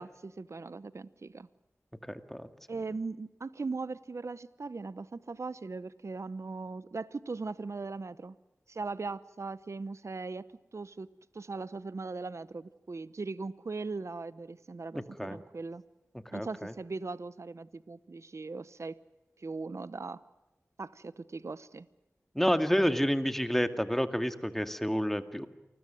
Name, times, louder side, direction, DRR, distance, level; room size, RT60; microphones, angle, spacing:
voice 1, 0.0-1.5 2.7-8.4 8.7-10.5 10.7-11.1 11.3-15.8 16.3-19.0 19.4-20.2 20.8-21.9, right 3 dB, 65° right, 16 dB, 0.8 m, -39 dB
voice 2, 2.1-2.5 14.9-15.4 16.3-16.7 22.4-25.5, equal, 5° left, 8 dB, 2.2 m, -29 dB
28.0 x 20.5 x 7.6 m, 1.1 s
cardioid pair, 40°, 5 cm